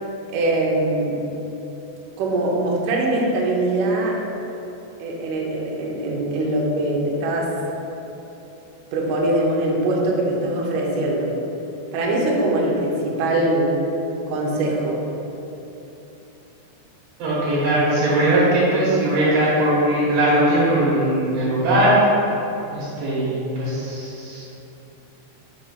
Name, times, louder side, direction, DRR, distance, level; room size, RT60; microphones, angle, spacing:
voice 1, 0.3-1.2 2.2-4.2 5.0-7.5 8.9-11.3 11.9-13.8 14.3-15.0, right 1 dB, 85° right, -2 dB, 1.8 m, -22 dB
voice 2, 17.2-21.9 22.7-24.4, right 1 dB, 65° right, -9 dB, 2.8 m, -20 dB
6.4 x 2.9 x 5.6 m, 3.0 s
omnidirectional pair, 5.0 m